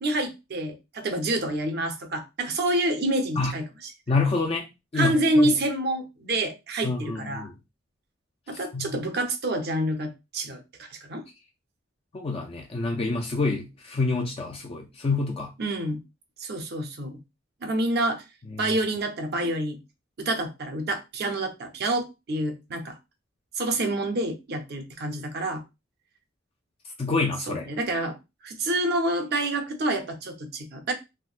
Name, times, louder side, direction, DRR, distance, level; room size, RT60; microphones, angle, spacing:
voice 1, 0.0-3.6 4.9-7.5 8.5-11.2 15.6-16.0 16.4-17.2 17.6-18.2 18.6-19.8 20.2-23.0 23.6-25.6 27.5-28.2 28.4-30.9, right 1 dB, 55° right, 0.6 m, -27 dB
voice 2, 4.1-5.6 6.8-7.5 8.5-9.0 12.1-15.5 18.5-18.8 27.0-27.7, left 3 dB, 30° left, 0.4 m, -28 dB
3.5 x 2.1 x 2.4 m
head